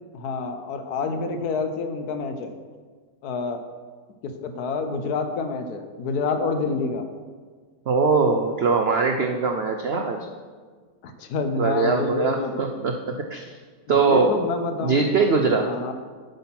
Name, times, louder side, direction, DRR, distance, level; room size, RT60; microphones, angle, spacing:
voice 1, 0.1-2.5 3.2-3.6 4.2-7.0 11.0-12.8 13.9-15.1 15.6-15.9, left 4 dB, 65° left, 7 dB, 1.2 m, -28 dB
voice 2, 7.9-10.2 11.6-13.0 13.3-13.6 13.9-14.4 14.8-15.7, right 4 dB, 75° right, 4 dB, 0.5 m, -21 dB
8.8 x 5.7 x 5.8 m, 1.5 s
omnidirectional pair, 1.9 m